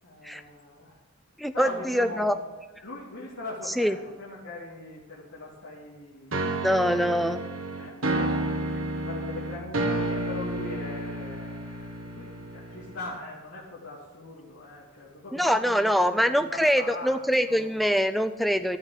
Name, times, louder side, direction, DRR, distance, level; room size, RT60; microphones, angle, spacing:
voice 1, 0.0-1.0 1.5-2.4 2.8-17.7, left 2 dB, 90° left, -6 dB, 2.3 m, -41 dB
voice 2, 1.4-2.3 3.8-3.9 6.6-7.4 15.3-18.8, equal, ahead, 9 dB, 0.4 m, -24 dB
sound 1, 6.3-13.2, right 2 dB, 75° right, 1.5 m, -31 dB
12.0 x 6.6 x 7.4 m, 1.2 s
head